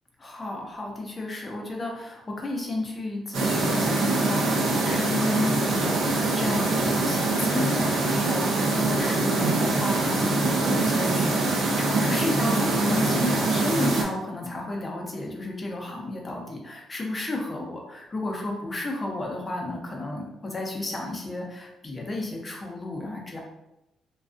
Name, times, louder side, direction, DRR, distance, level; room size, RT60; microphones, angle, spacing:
voice 1, 0.2-23.4, left 2 dB, 30° left, 0 dB, 0.6 m, -32 dB
sound 1, 3.3-14.0, right 2 dB, 80° right, 0.5 m, -24 dB
2.3 x 2.3 x 2.4 m, 0.90 s
cardioid pair, 90°, 0 cm